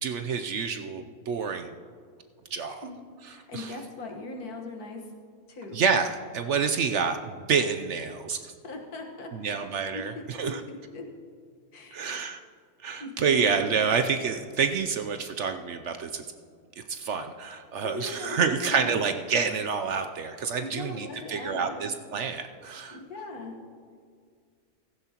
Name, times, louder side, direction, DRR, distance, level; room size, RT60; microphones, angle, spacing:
voice 1, 0.0-1.7 2.5-2.9 3.5-3.8 5.7-8.5 9.3-10.6 11.9-12.4 12.8-16.2 16.8-23.0, right 6 dB, 65° right, 7 dB, 0.8 m, -28 dB
voice 2, 3.3-5.0 5.5-5.8 8.6-9.7 9.9-10.5 10.9-11.0 11.7-12.0 13.0-13.5 17.8-18.9 20.6-21.9 22.9-23.5, left 2 dB, 80° left, 2 dB, 1.9 m, -39 dB
16.0 x 14.5 x 2.9 m, 2.1 s
omnidirectional pair, 1.6 m